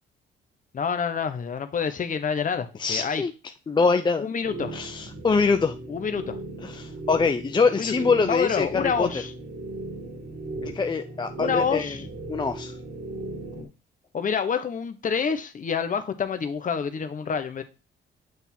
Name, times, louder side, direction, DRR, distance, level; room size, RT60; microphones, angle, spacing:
voice 1, 0.7-3.2 4.2-4.7 5.9-6.4 7.7-7.9 8.3-9.3 11.4-12.0 13.6-13.7 14.1-17.6, left 6 dB, 40° left, 1.0 m, -27 dB
voice 2, 2.8-3.3 3.7-4.2 4.7-5.8 6.6-9.1 10.6-12.0 12.3-12.8, left 4 dB, 25° left, 0.5 m, -24 dB
sound 1, 4.4-13.6, right 2 dB, 50° right, 2.4 m, -37 dB
8.0 x 3.5 x 4.3 m
cardioid pair, 90°, 20 cm